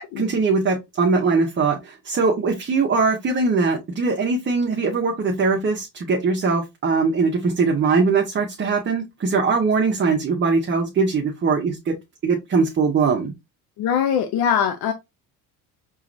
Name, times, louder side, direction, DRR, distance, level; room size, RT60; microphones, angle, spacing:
voice 1, 0.2-11.9 12.2-13.3, right 4 dB, 30° right, 1.1 m, -21 dB
voice 2, 13.8-14.9, left 8 dB, 75° left, 0.8 m, -21 dB
4.7 x 3.1 x 2.6 m
supercardioid pair, 100°, 38 cm